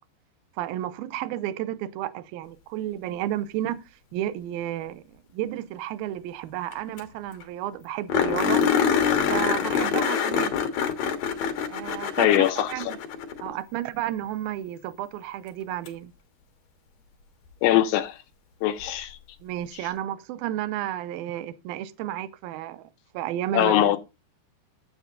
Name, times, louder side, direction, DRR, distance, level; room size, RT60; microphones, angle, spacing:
voice 1, 0.6-3.8 4.1-5.0 5.3-8.6 9.3-10.6 11.7-13.0 13.4-16.1 19.4-22.8 23.1-23.9, right 12 dB, 80° right, 2.2 m, -32 dB
sound 1, 6.7-6.8 7.0-7.1 7.4-7.5 8.1-13.5 15.9-16.0 18.8-18.9, left 7 dB, 65° left, 2.8 m, -25 dB
voice 2, 12.2-12.7 17.6-18.2 18.6-19.2 23.5-24.0, left 13 dB, 80° left, 2.9 m, -21 dB
9.9 x 7.8 x 3.8 m
omnidirectional pair, 4.9 m